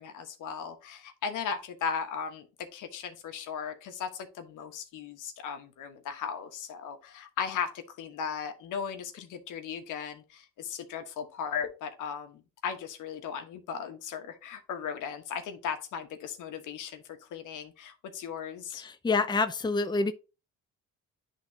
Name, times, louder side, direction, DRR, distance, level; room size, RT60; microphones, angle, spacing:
voice 1, 0.0-18.8, left 7 dB, 85° left, 1.3 m, -37 dB
voice 2, 18.8-20.1, left 3 dB, 15° left, 0.6 m, -27 dB
10.5 x 3.7 x 2.8 m
cardioid pair, 90°, 30 cm